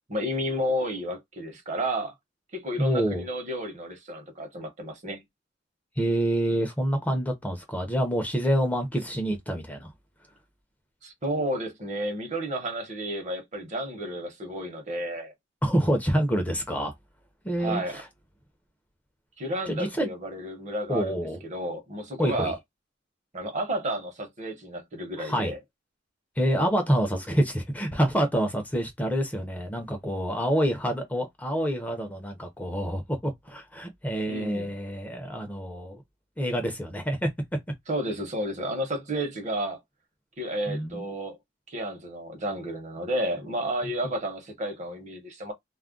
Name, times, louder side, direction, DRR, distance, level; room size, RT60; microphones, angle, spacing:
voice 1, 0.1-2.1 2.5-5.2 11.0-15.3 17.6-18.0 19.4-22.6 23.3-25.6 34.3-34.7 37.9-39.8 40.4-41.4 41.7-45.5, right 1 dB, 40° right, 0.9 m, -32 dB
voice 2, 2.8-3.2 6.0-9.9 15.6-16.9 17.4-18.1 19.7-20.1 20.9-21.4 22.2-22.5 25.2-25.5 26.4-36.0 36.4-37.3 40.7-41.1 43.8-43.9, equal, 10° left, 0.6 m, -27 dB
2.3 x 2.1 x 3.6 m
head